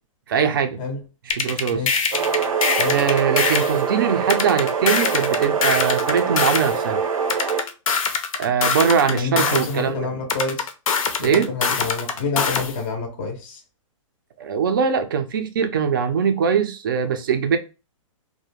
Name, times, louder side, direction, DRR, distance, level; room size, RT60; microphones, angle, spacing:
voice 1, 0.3-0.8 1.2-2.4 2.9-7.0 8.4-10.1 11.2-11.5 14.4-17.6, right 7 dB, 40° right, 0.4 m, -22 dB
sound 1, 1.3-3.8 4.3-6.7 7.3-9.7 10.3-12.7, left 5 dB, 90° left, 0.6 m, -23 dB
voice 2, 1.7-2.1 2.8-3.0 9.1-10.7 11.2-13.6, left 3 dB, 20° left, 0.5 m, -28 dB
sound 2, 2.1-7.6, right 6 dB, 85° right, 0.6 m, -24 dB
2.4 x 2.1 x 3.0 m
hypercardioid pair, 175°, 17 cm